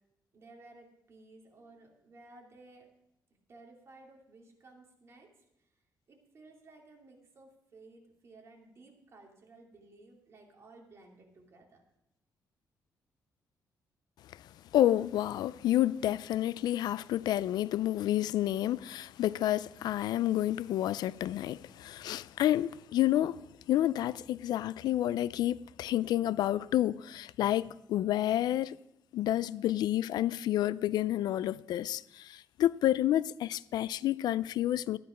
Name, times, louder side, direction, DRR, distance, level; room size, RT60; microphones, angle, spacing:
voice 1, 0.3-2.9 3.5-5.7 6.1-11.8, right 2 dB, 40° right, 2.7 m, -56 dB
voice 2, 14.7-28.8 29.1-35.0, left 13 dB, 80° left, 0.4 m, -29 dB
13.0 x 10.5 x 5.1 m
cardioid pair, 140°, 7 cm